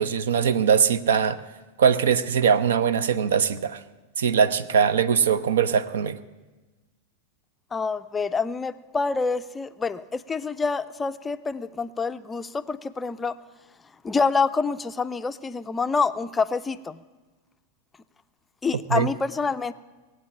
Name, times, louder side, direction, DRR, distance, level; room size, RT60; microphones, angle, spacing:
voice 1, 0.0-1.4 1.8-3.8 4.2-6.2 18.9-19.1, right 7 dB, 60° right, 16 dB, 0.6 m, -21 dB
voice 2, 7.7-13.3 14.0-17.0 18.6-19.7, left 4 dB, 15° left, 12 dB, 0.4 m, -27 dB
19.0 x 8.0 x 8.6 m, 1.2 s
figure-of-eight pair, 90°, 0 cm